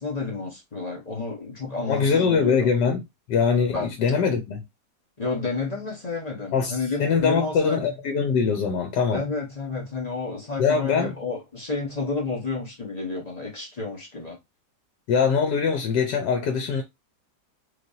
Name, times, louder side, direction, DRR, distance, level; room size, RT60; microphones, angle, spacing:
voice 1, 0.0-2.7 3.7-3.9 5.2-7.8 9.1-14.4, left 4 dB, 30° left, 1.0 m, -30 dB
voice 2, 1.9-3.0 3.3-4.6 6.5-9.2 10.6-11.1 15.1-16.8, left 5 dB, 80° left, 1.3 m, -22 dB
3.2 x 2.9 x 2.6 m
omnidirectional pair, 1.8 m